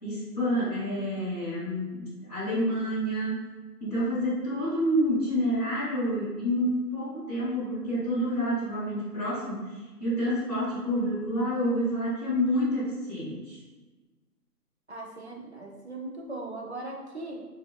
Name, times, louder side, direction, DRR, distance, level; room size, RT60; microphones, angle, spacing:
voice 1, 0.0-3.4 3.8-13.6, equal, 10° left, -18 dB, 1.2 m, -28 dB
voice 2, 14.9-17.4, right 2 dB, 45° right, -1 dB, 0.5 m, -39 dB
4.2 x 3.3 x 2.2 m, 1.3 s
figure-of-eight pair, 150°, 49 cm